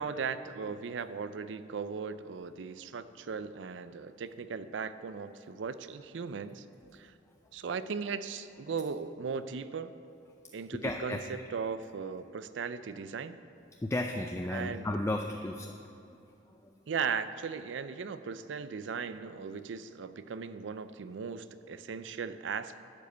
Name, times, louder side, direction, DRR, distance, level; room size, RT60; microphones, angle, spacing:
voice 1, 0.0-6.6 6.9-7.1 7.5-9.9 10.5-11.2 11.5-13.4 14.5-14.9 16.9-22.8, right 5 dB, 80° right, 12 dB, 0.4 m, -37 dB
voice 2, 10.8-11.2 13.8-15.7, left 1 dB, 15° left, 3 dB, 0.4 m, -33 dB
11.5 x 5.0 x 8.1 m, 2.8 s
head